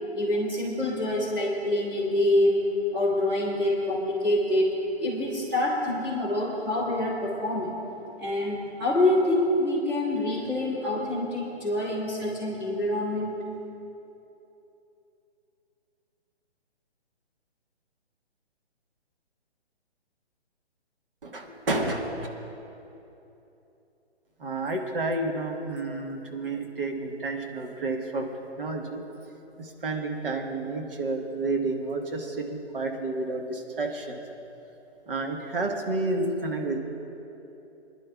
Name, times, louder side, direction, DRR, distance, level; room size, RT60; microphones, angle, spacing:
voice 1, 0.1-4.7 5.0-7.7 8.2-13.4, left 1 dB, 5° right, -9 dB, 1.9 m, -26 dB
voice 2, 21.2-22.3 24.4-28.3 28.6-29.0 29.6-34.2 35.1-36.8, right 2 dB, 55° right, 2 dB, 1.4 m, -30 dB
25.5 x 11.0 x 2.4 m, 3.0 s
hypercardioid pair, 170°, 34 cm